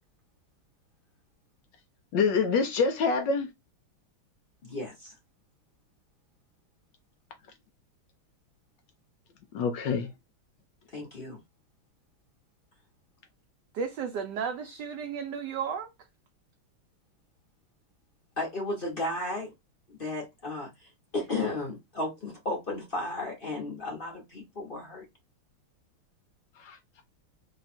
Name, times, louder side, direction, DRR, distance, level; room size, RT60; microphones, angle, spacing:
voice 1, 2.1-3.5 9.5-10.1 26.6-27.0, left 5 dB, 75° left, 1.1 m, -26 dB
voice 2, 4.6-5.1 10.9-11.4 18.4-19.5 19.9-25.0, left 2 dB, 40° left, 0.7 m, -34 dB
voice 3, 13.7-15.9, right 6 dB, 70° right, 1.0 m, -33 dB
3.3 x 2.3 x 4.2 m
omnidirectional pair, 2.3 m